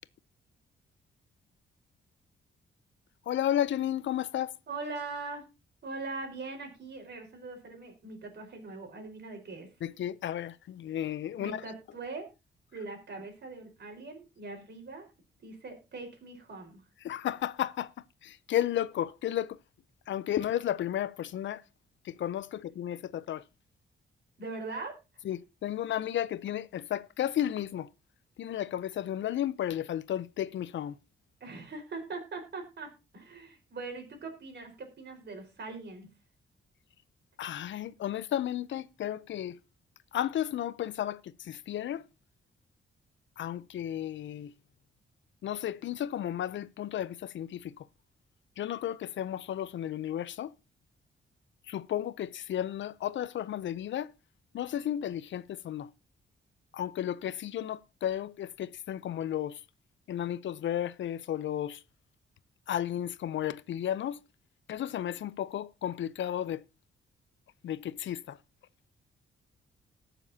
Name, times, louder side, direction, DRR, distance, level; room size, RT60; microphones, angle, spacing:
voice 1, 3.3-4.5 9.8-11.6 17.0-17.9 18.2-19.6 20.1-21.6 22.0-23.4 25.2-27.9 28.4-31.0 37.4-39.6 40.1-42.1 43.4-44.5 45.4-47.9 48.6-50.5 51.7-54.1 54.5-55.9 56.7-59.6 60.1-61.8 62.7-64.2 64.7-66.6 67.6-68.4, left 11 dB, 70° left, 0.6 m, -33 dB
voice 2, 4.7-5.4 5.8-9.7 11.4-12.3 12.7-15.0 15.4-16.8 24.4-24.9 31.4-36.1, right 3 dB, 60° right, 4.4 m, -41 dB
19.5 x 7.0 x 2.8 m
cardioid pair, 105°, 20 cm